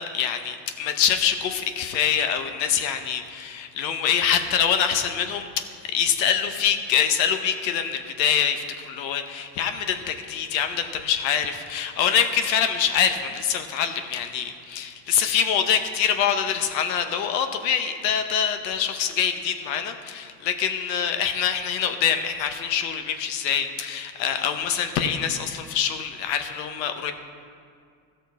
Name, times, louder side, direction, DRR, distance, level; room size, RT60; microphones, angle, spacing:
voice 1, 0.0-5.6 5.9-27.1, left 8 dB, 85° left, 7 dB, 1.0 m, -25 dB
14.0 x 6.3 x 4.7 m, 2.2 s
supercardioid pair, 90°, 49 cm